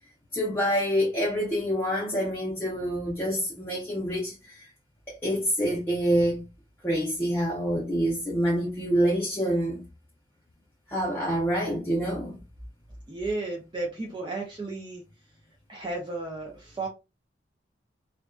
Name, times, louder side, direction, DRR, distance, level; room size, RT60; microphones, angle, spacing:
voice 1, 0.3-4.7 5.1-6.4 6.8-9.8 10.9-12.4, equal, 10° left, 0.7 m, -27 dB
voice 2, 13.1-15.0 15.7-16.9, right 3 dB, 25° right, 0.5 m, -33 dB
2.5 x 2.2 x 2.3 m
head